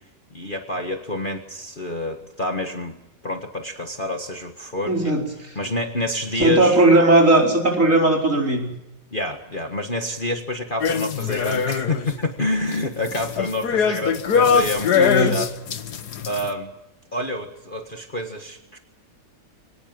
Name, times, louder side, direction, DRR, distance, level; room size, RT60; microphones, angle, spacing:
voice 1, 0.3-3.0 3.2-5.1 5.6-6.9 9.1-15.5 16.2-16.7 17.1-18.8, left 1 dB, 30° left, 4 dB, 1.7 m, -28 dB
voice 2, 4.9-5.2 6.4-8.7 14.9-15.4, right 2 dB, 45° right, 0 dB, 5.2 m, -17 dB
sound 1, 10.8-12.1 12.5-16.5, left 6 dB, 60° left, 1.7 m, -22 dB
24.5 x 19.0 x 7.7 m, 0.86 s
omnidirectional pair, 1.9 m